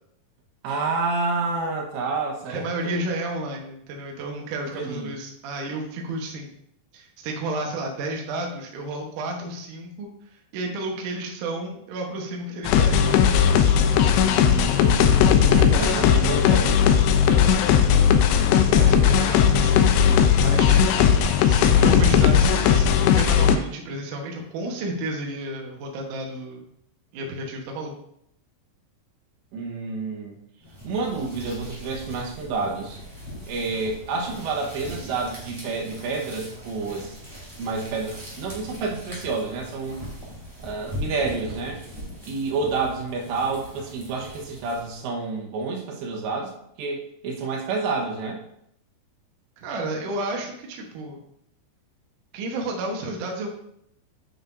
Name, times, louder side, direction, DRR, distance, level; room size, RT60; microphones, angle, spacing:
voice 1, 0.6-3.0 4.7-5.1 14.3-17.0 29.5-30.4 30.8-33.0 33.5-37.2 37.6-40.0 40.6-41.8 42.3-46.5 46.8-48.4, right 4 dB, 85° right, -1 dB, 3.5 m, -29 dB
voice 2, 2.5-6.5 6.9-10.1 10.5-14.1 15.4-16.2 18.7-19.8 20.4-26.6 27.1-27.9 49.6-51.2 52.3-53.5, right 2 dB, 65° right, 1 dB, 2.1 m, -32 dB
sound 1, 12.7-23.6, left 8 dB, 85° left, 2.8 m, -17 dB
sound 2, 30.6-45.1, equal, 10° right, 2.3 m, -40 dB
9.8 x 6.7 x 2.6 m, 0.73 s
omnidirectional pair, 4.9 m